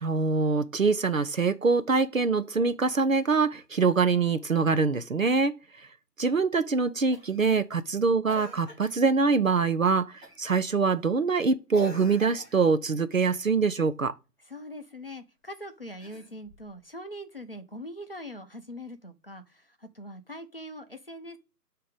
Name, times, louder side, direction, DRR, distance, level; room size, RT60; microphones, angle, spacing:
voice 1, 0.0-5.9 6.2-14.1, right 4 dB, 55° right, 0.5 m, -24 dB
Cough, 7.1-7.5 8.3-9.0 10.2-10.5 11.7-12.8 15.9-16.7 18.1-18.2, equal, 15° right, 2.5 m, -45 dB
voice 2, 14.4-21.4, equal, 35° left, 0.7 m, -42 dB
8.4 x 2.9 x 5.1 m
figure-of-eight pair, 155°, 49 cm